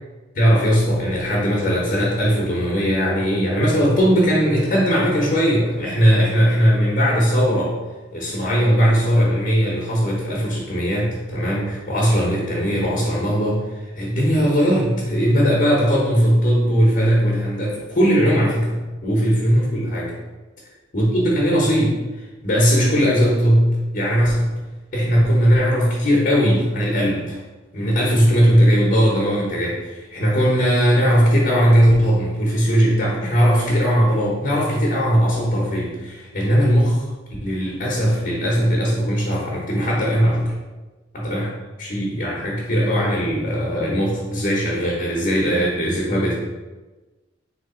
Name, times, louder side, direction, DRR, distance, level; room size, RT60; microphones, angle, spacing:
voice 1, 0.3-7.7 8.1-20.1 20.9-22.0 22.4-24.5 24.9-27.4 27.7-37.0 37.4-40.5 41.1-41.5 41.8-46.3, equal, 45° left, -5 dB, 1.0 m, -19 dB
3.8 x 3.1 x 4.3 m, 1.2 s
head